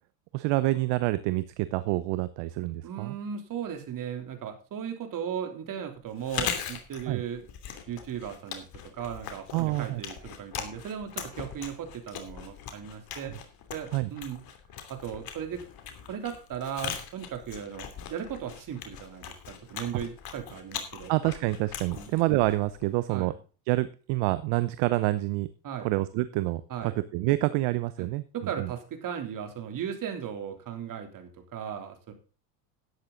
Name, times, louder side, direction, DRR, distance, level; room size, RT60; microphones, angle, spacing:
voice 1, 0.3-3.1 7.1-7.2 9.5-10.0 13.9-14.1 21.1-23.3 23.7-25.5 25.8-26.6 27.1-28.2 28.6-28.7, right 18 dB, 65° right, 14 dB, 0.9 m, -27 dB
voice 2, 2.8-7.5 7.9-13.4 13.7-14.4 14.9-15.6 16.1-21.1 21.9-22.1 23.1-23.3 25.6-25.9 26.7-26.9 28.0-32.1, right 8 dB, 45° right, 5 dB, 3.3 m, -37 dB
Chewing mastication, 6.1-23.0, left 8 dB, 50° left, 2.9 m, -40 dB
12.5 x 9.7 x 3.9 m, 0.36 s
supercardioid pair, 95°, 46 cm